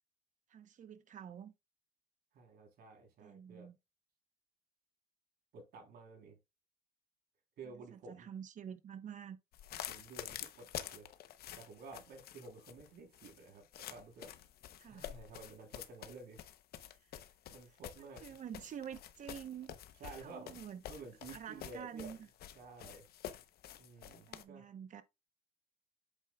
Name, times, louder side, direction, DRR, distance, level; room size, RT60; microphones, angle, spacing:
voice 1, 0.5-1.5 3.2-3.8 7.6-9.4 14.8-15.1 18.0-19.7 20.0-20.8 21.3-22.3 24.3-25.0, right 8 dB, 45° right, 1.0 m, -48 dB
voice 2, 2.3-3.7 5.5-6.4 7.6-8.3 9.9-11.1 11.5-14.3 14.9-16.4 17.5-18.2 20.0-20.6 20.9-22.2 22.5-23.1 23.8-24.6, right 3 dB, 65° right, 3.5 m, -52 dB
sound 1, 9.5-24.4, left 11 dB, 65° left, 0.8 m, -49 dB
8.2 x 7.1 x 2.3 m
cardioid pair, 110°, 17 cm